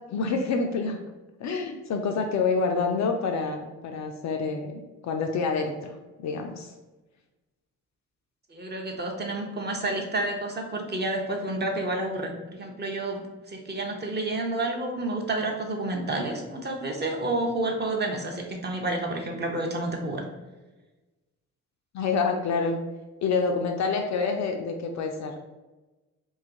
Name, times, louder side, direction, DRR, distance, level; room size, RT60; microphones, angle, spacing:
voice 1, 0.1-1.0 1.4-5.9 6.2-6.7 21.9-22.8 23.2-25.3, left 4 dB, 45° left, 3 dB, 0.4 m, -27 dB
voice 2, 8.5-13.2 13.5-20.3, right 2 dB, 25° right, 1 dB, 0.7 m, -30 dB
2.8 x 2.3 x 3.8 m, 1.1 s
figure-of-eight pair, 40°, 43 cm